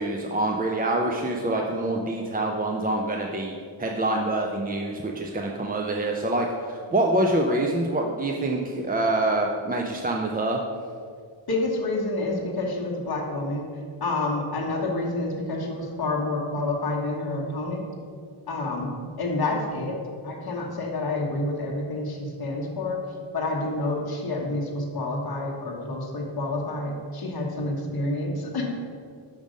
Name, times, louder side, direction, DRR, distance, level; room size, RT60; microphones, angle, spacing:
voice 1, 0.0-3.5 3.8-10.6, right 2 dB, 20° right, 0 dB, 0.3 m, -26 dB
voice 2, 11.5-13.7 14.0-17.8 18.5-20.0 20.2-23.0 23.3-28.8, left 2 dB, 45° left, -2 dB, 1.2 m, -28 dB
6.4 x 5.4 x 5.0 m, 2.2 s
wide cardioid pair, 170°, 49 cm